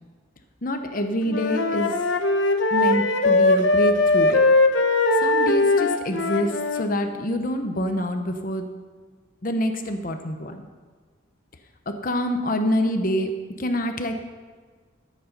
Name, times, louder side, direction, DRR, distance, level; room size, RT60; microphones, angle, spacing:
voice 1, 0.6-1.9 2.7-4.4 5.2-8.7 9.4-10.6 12.0-13.3 13.6-14.2, equal, 45° left, 6 dB, 0.9 m, -26 dB
Wind instrument woodwind instrument, 1.3-6.9, left 2 dB, 65° left, 0.9 m, -20 dB
13.5 x 8.6 x 5.2 m, 1.5 s
head